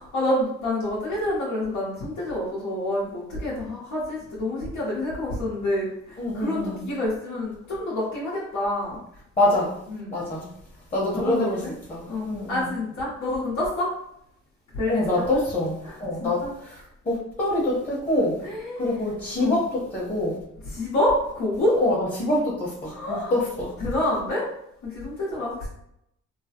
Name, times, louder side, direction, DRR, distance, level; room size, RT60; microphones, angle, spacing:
voice 1, 0.0-9.0 9.9-10.1 11.1-11.7 12.1-13.9 14.7-15.4 15.8-16.5 18.4-19.0 19.4-19.6 20.6-21.8 22.9-23.3 23.8-24.5 24.8-25.7, left 1 dB, 75° left, -8 dB, 1.1 m, -27 dB
voice 2, 6.2-6.8 9.4-9.7 10.1-10.5 10.9-11.6 11.9-12.6 14.9-18.4 18.8-20.4 21.8-23.7, left 1 dB, 25° left, -6 dB, 1.0 m, -25 dB
3.1 x 2.1 x 2.8 m, 0.76 s
cardioid pair, 90°, 30 cm